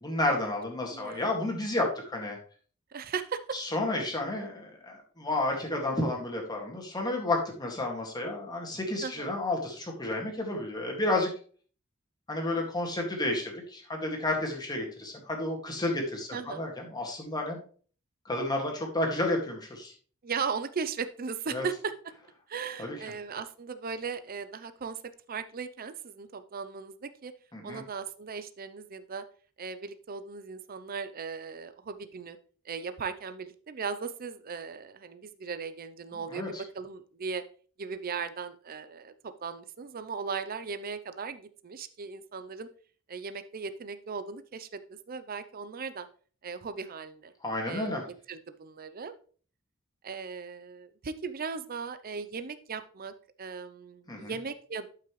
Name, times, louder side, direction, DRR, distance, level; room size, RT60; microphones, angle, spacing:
voice 1, 0.0-2.4 3.5-11.3 12.3-17.6 18.3-19.9 21.5-21.7 22.8-23.0 27.5-27.8 36.3-36.5 47.4-48.0 54.1-54.3, left 2 dB, 20° left, 0 dB, 2.0 m, -31 dB
voice 2, 0.9-1.3 2.9-3.4 9.0-9.3 12.5-12.7 16.3-16.7 20.2-21.9 22.5-25.0 25.3-27.3 27.6-29.2 29.6-32.4 32.6-37.4 37.8-42.7 43.1-46.1 46.4-47.3 47.7-48.0 48.3-49.1 50.0-54.9, right 5 dB, 45° right, 11 dB, 0.6 m, -37 dB
11.5 x 5.8 x 3.1 m, 0.43 s
head